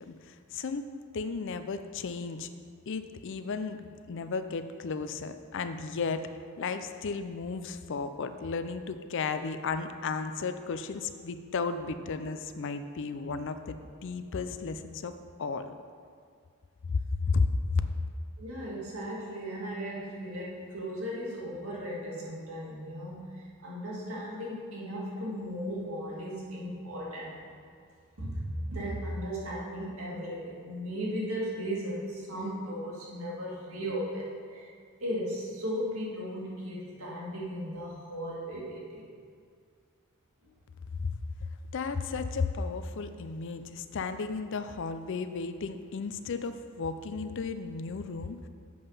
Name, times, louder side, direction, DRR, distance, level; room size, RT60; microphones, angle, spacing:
voice 1, 0.0-2.5 2.9-6.3 6.6-15.1 15.4-15.7 16.9-17.8 41.0-41.1 41.7-48.5, left 4 dB, 60° left, 10 dB, 0.5 m, -34 dB
voice 2, 18.4-27.5 28.2-34.7 35.0-39.1, equal, 80° right, -5 dB, 2.0 m, -36 dB
7.8 x 5.4 x 5.5 m, 2.2 s
head